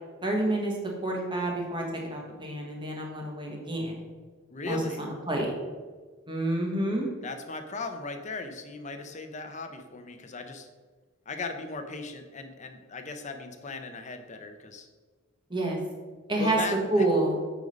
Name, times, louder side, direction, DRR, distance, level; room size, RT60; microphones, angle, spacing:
voice 1, 0.2-0.8 1.0-3.9 4.6-5.5 6.3-7.1 15.5-15.8 16.3-16.6 16.9-17.4, right 1 dB, 25° right, 0 dB, 1.4 m, -28 dB
voice 2, 4.5-5.0 7.2-10.7 11.3-14.9 16.4-17.1, left 3 dB, 35° left, 6 dB, 0.7 m, -37 dB
8.1 x 4.0 x 5.2 m, 1.4 s
head